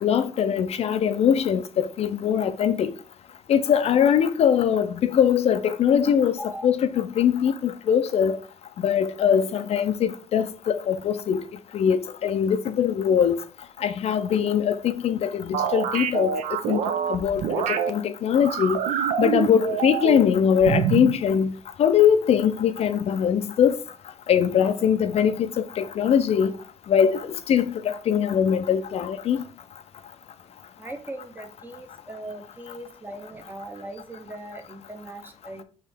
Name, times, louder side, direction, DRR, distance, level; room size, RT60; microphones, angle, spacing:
voice 1, 0.0-2.9 3.5-8.4 8.8-11.4 11.7-13.4 13.8-16.3 16.7-16.8 17.1-18.8 19.2-21.5 21.8-23.8 24.3-26.5 26.9-29.4, left 8 dB, 55° left, 0.4 m, -22 dB
voice 2, 6.4-6.7 30.8-35.6, right 1 dB, 15° right, 0.7 m, -39 dB
sound 1, 15.5-17.9 18.4-20.3 20.6-21.2, right 8 dB, 85° right, 0.5 m, -26 dB
4.5 x 3.1 x 3.4 m
cardioid pair, 120°, 13 cm